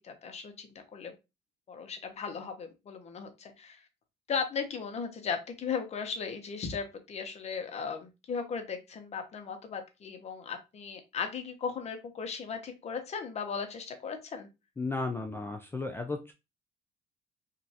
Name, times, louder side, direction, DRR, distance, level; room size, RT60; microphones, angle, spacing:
voice 1, 0.0-1.1 1.7-3.8 4.3-14.5, left 6 dB, 40° left, 6 dB, 0.7 m, -37 dB
voice 2, 14.8-16.3, left 3 dB, 15° left, 4 dB, 0.3 m, -34 dB
3.0 x 2.5 x 2.7 m, 0.25 s
cardioid pair, 110°, 17 cm